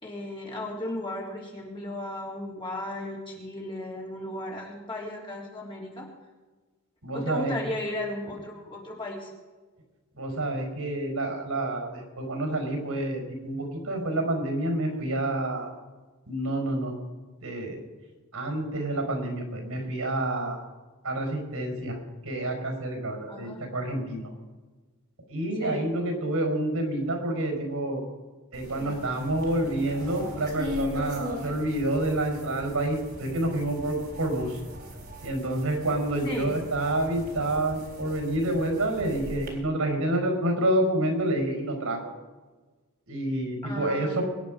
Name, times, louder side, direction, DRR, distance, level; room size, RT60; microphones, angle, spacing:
voice 1, 0.0-6.0 7.1-9.3 23.3-23.6 25.6-25.9 36.2-36.5 43.6-44.2, left 1 dB, 20° left, -3 dB, 3.6 m, -35 dB
voice 2, 7.0-7.5 10.2-15.7 16.3-16.9 17.4-17.8 18.3-20.6 21.0-22.0 22.2-24.3 25.3-28.0 28.5-34.6 35.2-42.0 43.1-44.2, right 1 dB, 75° right, 4 dB, 4.8 m, -28 dB
sound 1, 28.5-39.5, left 1 dB, 45° right, 4.1 m, -39 dB
23.5 x 10.0 x 5.2 m, 1.3 s
head